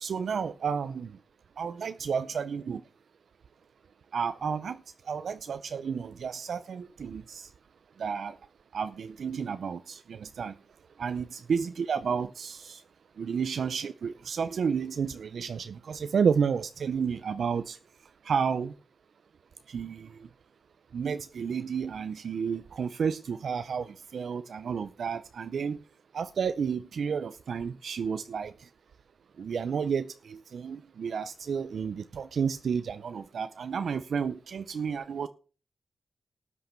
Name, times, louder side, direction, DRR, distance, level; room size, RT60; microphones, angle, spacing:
voice 1, 0.0-1.1 1.6-2.8 4.1-4.8 5.1-7.5 8.0-8.3 8.7-10.5 11.0-12.8 13.2-17.8 18.3-18.7 19.7-20.1 20.9-23.9 24.1-25.8 26.1-28.5 29.4-35.3, right 6 dB, 75° right, 0.6 m, -31 dB
13.0 x 8.3 x 4.4 m
wide cardioid pair, 110°, 0 cm